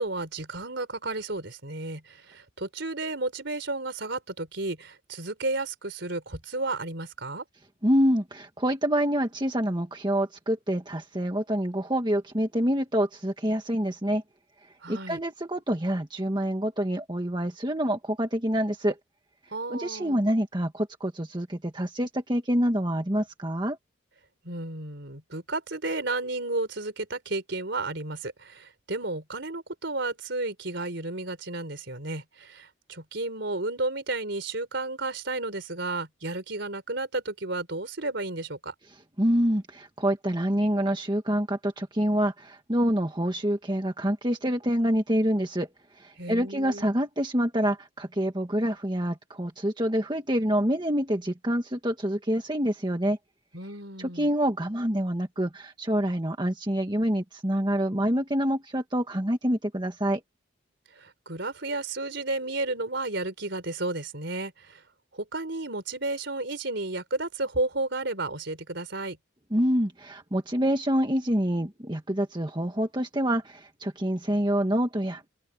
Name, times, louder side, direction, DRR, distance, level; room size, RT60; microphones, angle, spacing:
voice 1, 0.0-7.4 14.8-15.2 19.5-20.2 24.4-38.7 46.2-46.8 53.5-54.3 61.0-64.8 65.1-69.2, right 2 dB, 60° right, 4.5 m, -32 dB
voice 2, 7.8-14.2 14.9-19.0 19.7-23.8 39.2-45.7 45.9-53.2 54.0-60.2 69.5-75.3, equal, 25° right, 1.7 m, -26 dB
open air
head